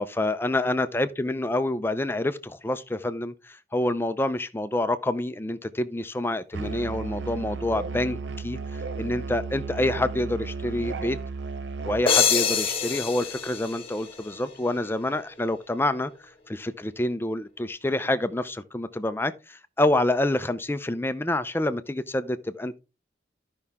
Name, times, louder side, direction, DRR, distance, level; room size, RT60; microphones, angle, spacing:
voice 1, 0.0-11.2 11.8-16.1 16.5-22.8, left 1 dB, 10° left, 0.4 m, -27 dB
Musical instrument, 6.5-12.1, right 4 dB, 60° right, 0.5 m, -34 dB
sound 1, 12.1-14.7, left 6 dB, 30° left, 1.1 m, -25 dB
12.5 x 5.5 x 3.6 m
head